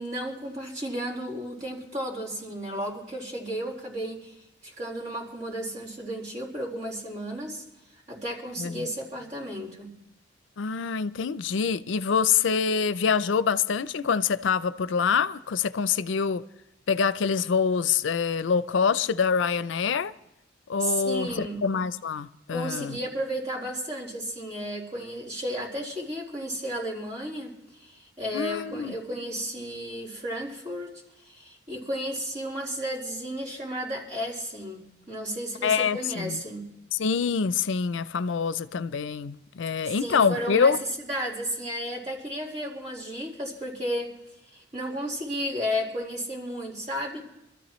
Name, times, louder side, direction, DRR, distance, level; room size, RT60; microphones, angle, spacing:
voice 1, 0.0-4.4 4.6-7.6 8.1-9.9 20.8-21.6 22.5-27.5 27.8-30.9 31.2-36.7 39.8-40.7 41.0-44.1 44.5-47.2, equal, 40° right, 4.2 m, -33 dB
voice 2, 8.6-8.9 10.6-16.4 16.9-20.1 20.7-23.0 28.3-28.9 35.6-36.4 36.9-40.8, left 6 dB, 75° left, 0.5 m, -25 dB
26.0 x 13.5 x 3.1 m
head